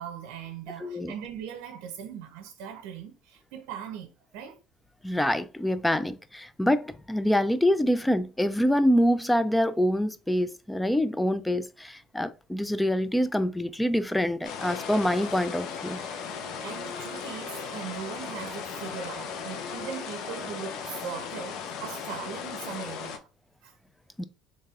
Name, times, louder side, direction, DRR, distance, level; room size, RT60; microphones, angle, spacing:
voice 1, 0.0-4.6 16.6-23.2 23.6-23.7, right 8 dB, 80° right, 0.6 m, -40 dB
voice 2, 0.8-1.1 5.0-16.0 24.2-24.3, equal, 5° left, 0.3 m, -25 dB
sound 1, 14.4-23.2, left 7 dB, 70° left, 0.5 m, -37 dB
Wind instrument woodwind instrument, 14.8-22.9, right 2 dB, 45° right, 0.9 m, -49 dB
4.0 x 3.1 x 2.3 m
cardioid pair, 110°, 0 cm